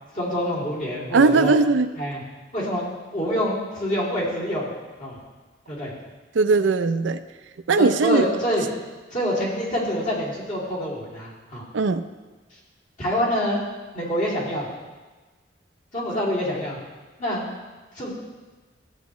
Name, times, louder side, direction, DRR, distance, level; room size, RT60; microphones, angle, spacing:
voice 1, 0.1-1.5 2.0-2.2 2.5-2.8 3.1-4.7 5.0-5.2 5.7-5.9 7.7-8.6 9.1-11.7 12.5-12.6 13.0-13.6 13.9-14.7 15.9-16.8 17.2-17.4 17.9-18.1, equal, 45° left, -6 dB, 2.7 m, -26 dB
voice 2, 1.1-1.9 6.3-7.2 7.7-8.3 11.7-12.0, right 3 dB, 85° right, 11 dB, 0.5 m, -19 dB
14.0 x 8.1 x 3.1 m, 1.3 s
head